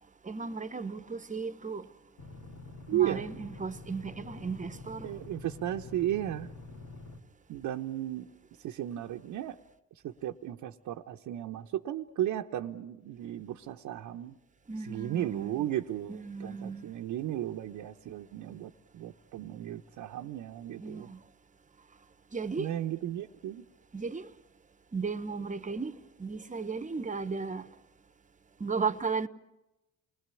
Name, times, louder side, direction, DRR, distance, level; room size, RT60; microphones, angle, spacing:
voice 1, 0.2-1.9 2.9-5.2 14.7-15.7 16.1-16.9 20.8-21.2 22.3-22.7 23.9-24.3 24.9-25.9 26.2-27.7 28.6-29.3, right 4 dB, 25° right, 1.1 m, -35 dB
sound 1, 2.2-7.2, left 3 dB, 75° left, 2.7 m, -47 dB
voice 2, 2.9-3.3 5.0-6.5 7.5-8.3 8.6-9.6 10.0-14.4 14.8-21.1 22.6-23.6, right 12 dB, 80° right, 1.0 m, -35 dB
28.5 x 20.0 x 8.4 m
cardioid pair, 90°, 30 cm